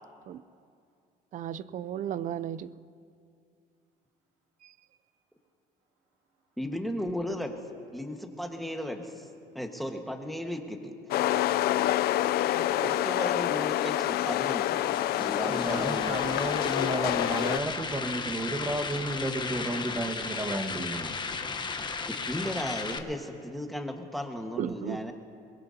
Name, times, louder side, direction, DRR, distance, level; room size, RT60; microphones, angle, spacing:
voice 1, 1.3-2.7 4.6-4.7 12.4-12.8 24.6-25.1, right 10 dB, 50° right, 17 dB, 0.4 m, -35 dB
voice 2, 4.9-5.5 5.8-6.6 9.5-9.7, right 3 dB, 80° right, -3 dB, 2.4 m, -67 dB
voice 3, 6.6-7.6 7.9-9.2 9.5-10.9 12.8-14.8 15.1-16.2 22.1-25.1, left 1 dB, ahead, 3 dB, 1.4 m, -35 dB
sound 1, 11.1-17.6, left 13 dB, 70° left, 0.4 m, -27 dB
sound 2, 14.8-23.0, left 4 dB, 25° left, 1.0 m, -35 dB
voice 4, 15.5-21.2, right 1 dB, 20° right, 5 dB, 1.4 m, -32 dB
22.5 x 22.0 x 2.8 m, 2.4 s
cardioid pair, 110°, 17 cm